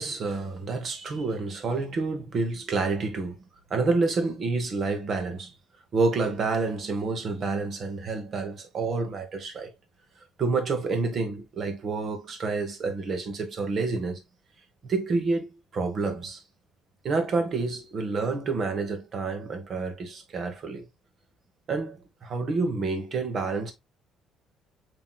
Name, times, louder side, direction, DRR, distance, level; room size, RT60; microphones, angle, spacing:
voice 1, 0.0-3.4 3.7-5.5 5.9-9.7 10.4-14.2 14.8-15.5 15.7-16.4 17.0-20.8 21.7-23.7, right 3 dB, 35° right, 1.2 m, -28 dB
7.3 x 3.1 x 2.2 m
cardioid pair, 165°, 0 cm